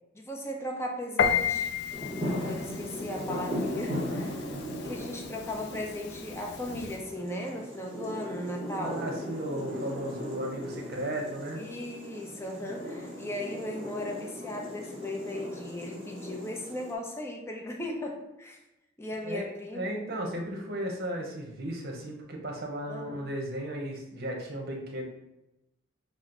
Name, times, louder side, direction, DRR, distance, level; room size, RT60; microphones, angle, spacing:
voice 1, 0.1-1.7 2.4-4.5 4.8-9.0 11.5-18.6 19.0-19.9 22.9-23.2, left 1 dB, 15° left, 0 dB, 0.6 m, -37 dB
Piano, 1.2-7.0, left 7 dB, 55° left, 0.3 m, -33 dB
sound 1, 1.9-16.9, equal, 30° right, 1.2 m, -38 dB
voice 2, 8.8-11.6 19.2-25.0, right 1 dB, 50° right, 1 dB, 0.9 m, -35 dB
6.1 x 2.1 x 3.8 m, 0.91 s
head